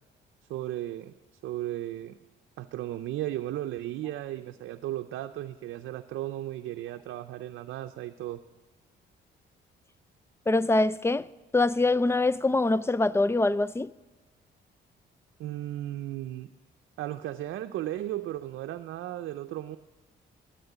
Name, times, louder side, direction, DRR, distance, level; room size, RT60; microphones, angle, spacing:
voice 1, 0.5-1.1 1.4-2.2 2.6-8.4 15.4-16.5 17.0-19.8, right 13 dB, 80° right, 0.6 m, -35 dB
voice 2, 10.5-11.2 11.5-13.9, left 2 dB, 15° left, 0.4 m, -24 dB
13.5 x 8.9 x 9.1 m
cardioid pair, 90°, 20 cm